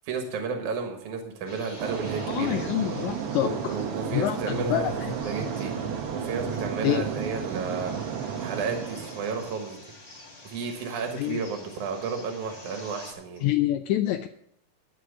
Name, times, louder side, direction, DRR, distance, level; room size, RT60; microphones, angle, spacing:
voice 1, 0.1-2.7 3.4-4.9 5.2-5.7 6.1-7.9 8.4-9.8 10.4-13.4, right 5 dB, 80° right, 4 dB, 2.8 m, -32 dB
sound 1, 1.4-13.1, left 2 dB, 20° left, 2.3 m, -47 dB
sound 2, 1.8-9.7, right 7 dB, 65° right, 1.6 m, -33 dB
voice 2, 2.3-3.8 4.1-5.1 5.6-5.7 6.8-7.0 11.2-11.4 13.4-14.3, left 13 dB, 80° left, 7 dB, 1.9 m, -27 dB
11.5 x 6.3 x 7.9 m, 0.72 s
omnidirectional pair, 3.4 m